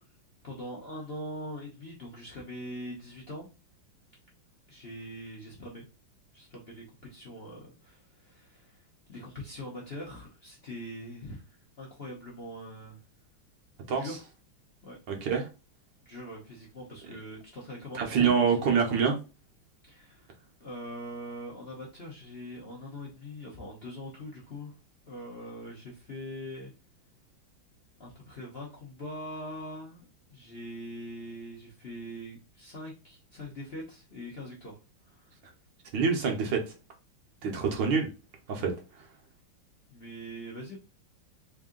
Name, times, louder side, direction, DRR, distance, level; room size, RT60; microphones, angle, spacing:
voice 1, 0.4-3.5 4.7-5.8 6.3-8.8 9.1-13.0 14.0-14.2 14.8-15.0 16.0-18.6 19.8-20.3 20.6-24.7 25.1-26.7 28.0-35.3 39.9-40.8, equal, 55° left, 0.7 m, -42 dB
voice 2, 15.1-15.5 17.9-19.2 35.9-36.7 37.4-38.1 38.5-38.7, right 6 dB, 70° right, 1.3 m, -26 dB
3.6 x 2.6 x 3.7 m
omnidirectional pair, 2.3 m